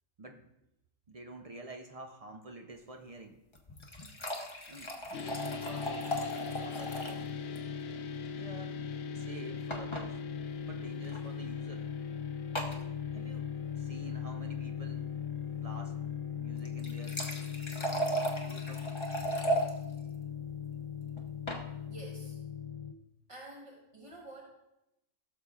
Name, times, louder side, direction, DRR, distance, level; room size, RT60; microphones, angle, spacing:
voice 1, 1.1-3.4 4.7-7.3 8.3-8.9 9.1-10.2 10.6-11.9 13.1-15.1 15.5-17.2 18.5-18.9, right 1 dB, 40° right, 4 dB, 0.5 m, -48 dB
sound 1, 3.5-7.3 7.6-7.7 7.9-8.0 9.7-10.1 11.0-11.2 12.6-12.8 16.6-19.7 21.2-21.6, right 1 dB, 25° left, 0.9 m, -36 dB
sound 2, 5.1-22.9, left 7 dB, 60° left, 0.7 m, -39 dB
voice 2, 21.9-22.4 23.3-24.5, right 2 dB, 25° right, -3 dB, 1.1 m, -49 dB
15.5 x 6.7 x 2.4 m, 0.88 s
omnidirectional pair, 1.3 m